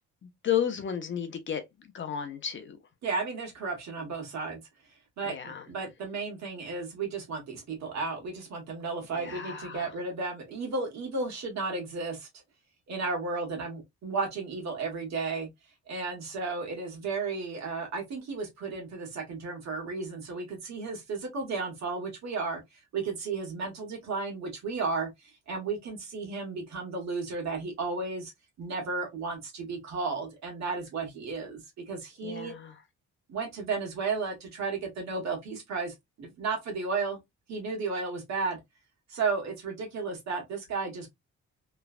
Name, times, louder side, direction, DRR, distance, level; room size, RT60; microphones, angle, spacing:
voice 1, 0.2-1.6 1.9-2.8 5.3-5.6 9.1-9.9 32.2-32.8, left 9 dB, 40° left, 0.5 m, -33 dB
voice 2, 3.0-4.6 5.2-12.3 12.9-15.5 15.9-22.6 22.9-25.1 25.5-28.3 28.6-31.6 31.9-32.5 33.3-37.2 37.5-38.6 39.1-41.1, right 4 dB, 65° right, 1.4 m, -33 dB
3.1 x 2.2 x 2.3 m
wide cardioid pair, 155°, 30 cm